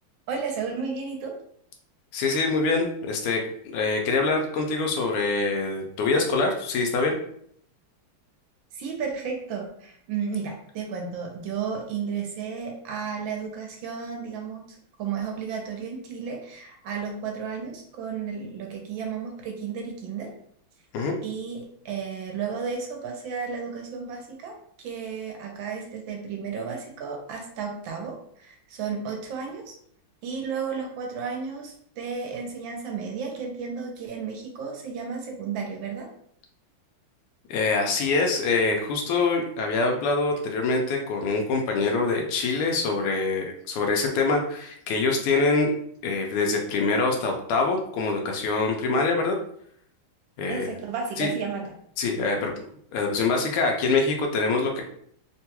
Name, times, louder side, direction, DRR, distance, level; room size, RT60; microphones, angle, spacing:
voice 1, 0.3-1.4 8.7-20.3 21.2-29.8 30.2-36.1 50.5-51.6, right 6 dB, 70° right, 2 dB, 1.3 m, -33 dB
voice 2, 2.1-7.2 20.9-21.2 37.5-45.7 46.0-49.4 50.4-50.7 51.2-51.3 52.0-54.8, left 3 dB, 85° left, 2 dB, 1.5 m, -25 dB
3.7 x 2.2 x 2.8 m, 0.66 s
omnidirectional pair, 2.4 m